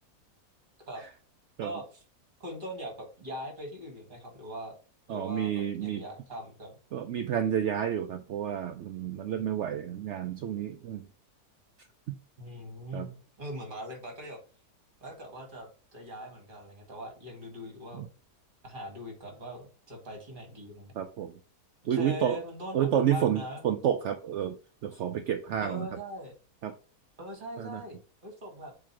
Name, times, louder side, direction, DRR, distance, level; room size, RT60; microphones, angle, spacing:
voice 1, 1.6-2.0 2.4-4.8 5.1-6.8 12.4-14.4 15.0-18.0 18.6-20.9 21.8-23.7 25.6-26.4 27.2-28.7, equal, 30° right, 1.9 m, -41 dB
voice 2, 5.1-6.0 6.9-11.1 12.1-12.2 12.9-13.1 17.9-18.1 20.9-21.4 21.9-22.4 22.7-25.9 26.6-26.8 27.6-27.8, right 9 dB, 70° right, 0.6 m, -30 dB
7.4 x 3.1 x 4.6 m
omnidirectional pair, 1.8 m